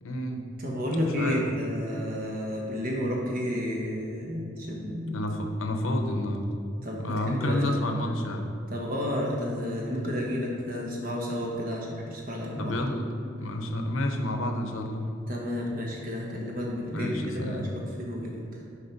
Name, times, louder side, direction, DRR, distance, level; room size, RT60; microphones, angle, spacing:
voice 1, 0.0-0.4 1.2-1.4 5.1-6.5 7.0-8.5 12.6-13.0 13.4-15.1 16.9-17.7, left 1 dB, 90° left, 5 dB, 0.8 m, -29 dB
voice 2, 0.6-5.3 6.8-7.8 8.7-12.8 15.3-18.3, left 1 dB, 45° right, -2 dB, 1.3 m, -31 dB
6.6 x 4.7 x 5.8 m, 2.5 s
head